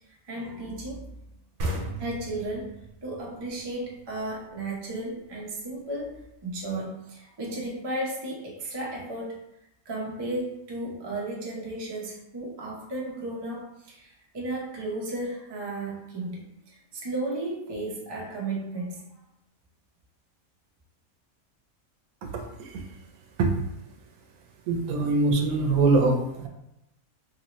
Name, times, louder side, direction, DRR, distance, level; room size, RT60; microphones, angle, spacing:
voice 1, 0.1-1.0 2.0-2.7 3.0-6.2 6.4-9.4 9.9-19.1, right 2 dB, 30° right, -3 dB, 0.4 m, -34 dB
sound 1, 1.6-5.0, right 1 dB, 65° right, 0.9 m, -36 dB
voice 2, 22.3-22.9 23.4-23.5 24.7-26.5, right 3 dB, 90° right, 3 dB, 1.1 m, -23 dB
2.9 x 2.7 x 3.0 m, 0.85 s
omnidirectional pair, 1.5 m